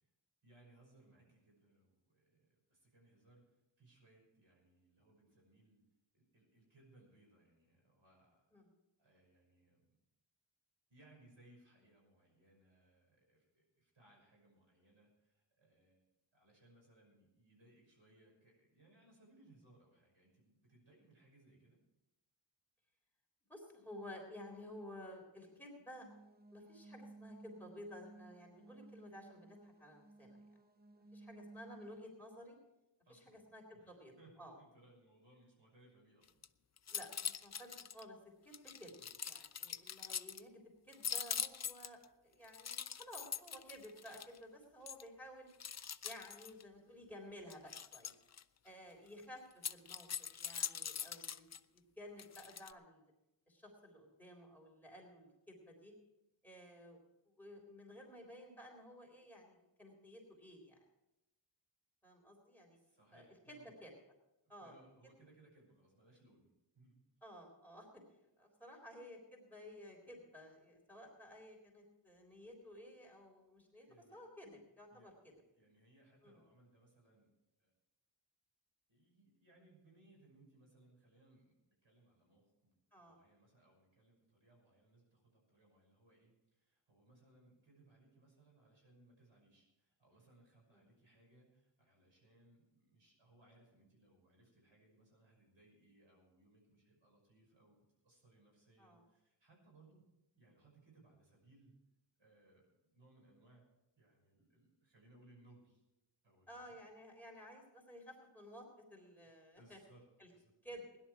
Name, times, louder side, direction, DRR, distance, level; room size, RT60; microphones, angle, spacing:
voice 1, 0.4-5.8 6.1-8.5 9.0-10.0 10.9-21.8 33.1-33.5 33.7-36.5 39.0-39.2 62.7-63.7 64.4-67.0 73.9-74.2 74.9-75.1 75.5-77.3 77.6-77.7 78.9-100.0 100.3-101.7 102.2-103.7 104.0-105.8 106.2-106.8 109.6-110.0 110.3-110.5, right 2 dB, 75° right, -1 dB, 6.0 m, -67 dB
voice 2, 23.5-26.1 26.5-30.4 31.1-32.6 33.1-34.5 36.9-38.2 38.4-38.9 39.2-42.0 42.2-45.5 46.0-48.1 48.6-50.1 50.4-51.5 51.7-53.0 53.5-55.9 56.4-60.8 62.0-62.8 63.1-63.9 64.5-64.7 67.2-68.0 68.4-75.3 76.2-76.4 82.9-83.2 98.8-99.0 106.5-109.8 110.2-110.3 110.6-111.0, equal, 5° left, -1 dB, 3.8 m, -54 dB
sound 1, 26.0-32.0, right 2 dB, 20° right, 0.5 m, -57 dB
sound 2, 36.2-36.5 36.8-38.0 38.5-40.4 40.9-42.0 42.5-44.4 44.9-45.0 45.6-46.6 47.5-48.4 49.5-51.6 52.2-52.7, left 7 dB, 40° left, 0.4 m, -43 dB
17.0 x 11.0 x 4.8 m, 0.92 s
wide cardioid pair, 85°, 46 cm